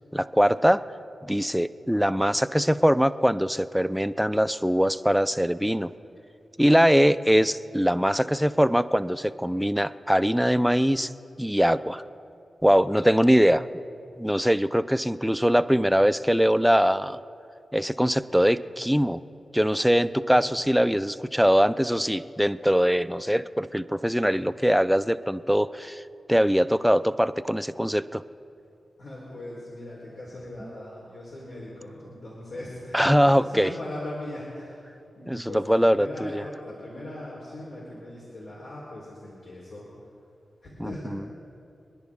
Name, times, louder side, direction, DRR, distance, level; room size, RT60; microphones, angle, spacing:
voice 1, 0.1-0.8 1.2-5.9 6.6-11.1 11.4-12.0 12.6-13.7 14.2-17.2 17.7-19.2 19.5-26.0 26.3-28.2 32.9-33.7 35.3-36.4 40.8-41.2, equal, ahead, 13 dB, 0.4 m, -22 dB
voice 2, 29.0-34.8 35.2-39.9 40.6-41.2, left 1 dB, 90° left, -7 dB, 3.8 m, -39 dB
27.5 x 11.0 x 3.6 m, 2.5 s
wide cardioid pair, 90°, 0 cm